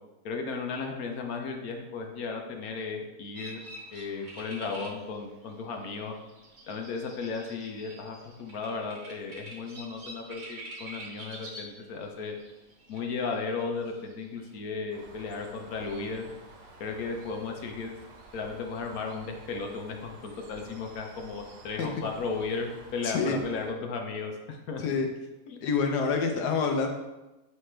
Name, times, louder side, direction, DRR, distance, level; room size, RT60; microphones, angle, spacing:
voice 1, 0.2-3.6 3.9-6.2 6.7-12.4 12.9-16.3 16.8-17.9 18.3-24.8 25.5-25.6, left 4 dB, 70° left, 3 dB, 1.2 m, -35 dB
sound 1, 3.3-14.6, right 1 dB, 35° right, 0.9 m, -47 dB
Bird, 14.9-23.7, right 3 dB, 80° right, 1.4 m, -51 dB
voice 2, 23.0-23.4 24.8-25.1 25.6-26.9, left 5 dB, 85° left, 3 dB, 1.3 m, -27 dB
9.2 x 3.4 x 3.3 m, 1.0 s
omnidirectional pair, 1.7 m